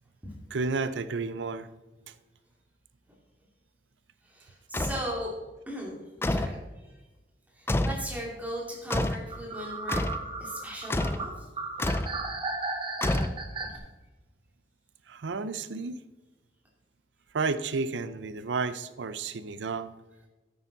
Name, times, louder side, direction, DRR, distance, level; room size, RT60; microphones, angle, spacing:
voice 1, 0.5-1.7 2.1-2.2 15.1-16.0 17.3-19.9, right 4 dB, 90° right, 14 dB, 0.5 m, -31 dB
voice 2, 4.2-5.3 5.7-6.9 7.5-10.0 10.4-11.5 13.7-13.8, equal, 10° right, -3 dB, 2.4 m, -38 dB
sound 1, 4.7-5.1 6.2-6.6 7.7-8.1 8.9-9.3 9.9-10.2 10.9-11.3 11.8-12.2 13.0-13.7, left 1 dB, 15° left, 0.4 m, -28 dB
sound 2, 9.3-13.8, right 3 dB, 30° right, 1.0 m, -35 dB
9.7 x 8.9 x 4.0 m, 1.2 s
head